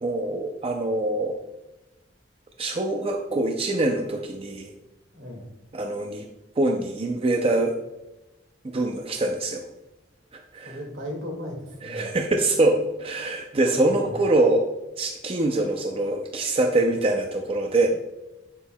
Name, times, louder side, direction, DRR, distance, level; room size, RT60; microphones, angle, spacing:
voice 1, 0.0-1.4 2.6-4.7 5.7-6.3 6.6-7.7 8.6-9.7 10.3-10.8 11.8-14.7 15.0-17.9, right 2 dB, 30° right, 3 dB, 0.5 m, -24 dB
voice 2, 5.1-5.5 10.6-12.2 13.8-14.2, equal, 75° right, 0 dB, 2.1 m, -37 dB
9.1 x 6.9 x 2.2 m, 1.0 s
head